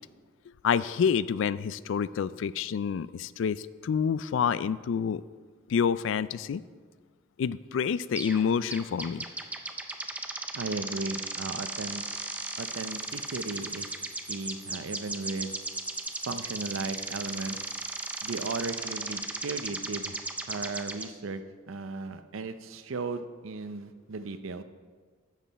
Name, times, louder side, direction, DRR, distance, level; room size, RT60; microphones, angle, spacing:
voice 1, 0.6-5.2 5.7-6.6 7.4-9.3, left 7 dB, 70° left, 17 dB, 0.3 m, -28 dB
sound 1, 8.2-8.4 8.7-21.1, right 2 dB, 5° right, 0.5 m, -36 dB
voice 2, 10.5-12.0 12.6-13.9 14.3-15.6 16.3-17.6 18.2-21.4 21.7-24.6, right 3 dB, 85° right, 10 dB, 0.6 m, -36 dB
11.0 x 7.5 x 4.1 m, 1.5 s
head